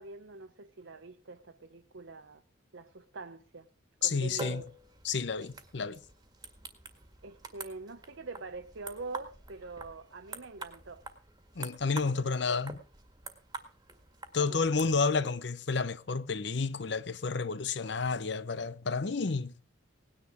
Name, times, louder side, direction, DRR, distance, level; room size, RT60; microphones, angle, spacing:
voice 1, 0.0-2.4 2.7-3.7 4.0-4.7 7.2-11.0 12.0-12.6 14.4-14.9, right 3 dB, 75° right, 0.8 m, -44 dB
voice 2, 4.0-4.6 5.0-6.0 11.5-12.8 14.3-19.5, left 4 dB, 60° left, 0.7 m, -30 dB
sound 1, 4.2-15.0, right 3 dB, 20° right, 1.8 m, -47 dB
18.0 x 10.0 x 4.9 m
head